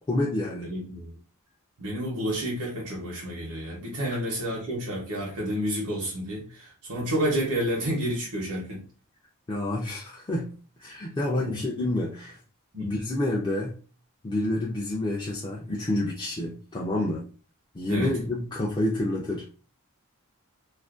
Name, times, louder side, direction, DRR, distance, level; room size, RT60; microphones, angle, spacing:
voice 1, 0.1-0.7 9.5-10.5 10.8-12.4 12.8-13.8 14.2-17.3 17.7-19.5, left 1 dB, 20° left, 0.3 m, -28 dB
voice 2, 0.6-1.2 1.8-8.8 11.4-11.6 12.7-12.9 17.9-18.1, equal, 85° right, 0.8 m, -30 dB
2.4 x 2.1 x 2.4 m
head